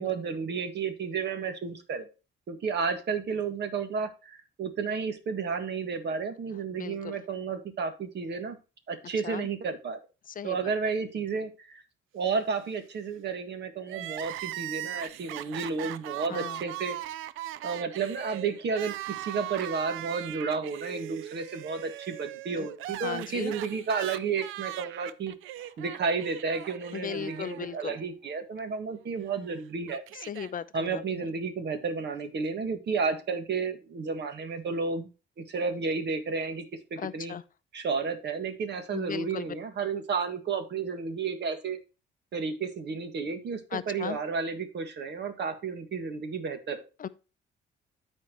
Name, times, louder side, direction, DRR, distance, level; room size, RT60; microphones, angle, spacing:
voice 1, 0.0-2.1 2.5-8.6 8.9-10.0 10.4-11.8 12.1-17.0 17.6-25.3 25.8-30.0 30.7-35.1 35.4-36.6 36.9-37.3 37.7-41.8 42.3-46.8, right 5 dB, 60° right, 1.7 m, -32 dB
voice 2, 6.7-7.2 9.2-9.5 10.3-10.7 16.3-16.6 22.6-22.7 23.0-23.5 26.9-28.0 30.1-31.2 37.0-37.4 38.9-39.5 43.7-44.2 47.0-47.1, left 8 dB, 45° left, 0.5 m, -37 dB
Crying sobbing, 13.8-28.0 28.3-28.4 29.4-30.5, right 14 dB, 90° right, 0.5 m, -39 dB
13.0 x 4.5 x 3.0 m
cardioid pair, 90°, 20 cm